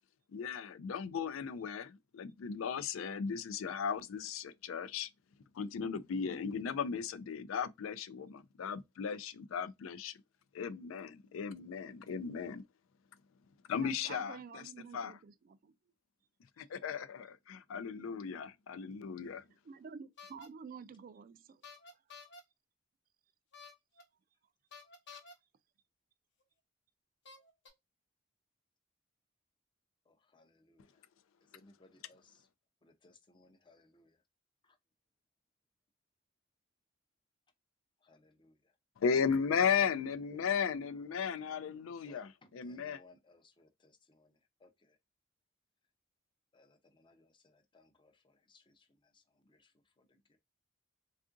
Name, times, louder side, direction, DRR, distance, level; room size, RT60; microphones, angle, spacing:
voice 1, 0.3-5.1 5.5-10.1 10.5-12.6 13.7-14.6 14.9-15.1 16.6-19.4 39.0-43.0, left 6 dB, 90° left, 0.4 m, -36 dB
voice 2, 13.8-15.7 19.6-21.6 21.9-22.0, right 5 dB, 45° right, 0.3 m, -50 dB
sound 1, 20.2-20.5 21.6-22.4 23.5-24.0 24.7-25.3 26.4-26.5 27.3-27.7, left 4 dB, 60° left, 0.9 m, -52 dB
voice 3, 30.1-31.0 31.4-32.5 32.8-34.2 34.6-34.8 38.0-38.7 42.1-45.0 46.5-50.4, left 2 dB, 25° left, 0.5 m, -65 dB
3.6 x 2.4 x 2.4 m
head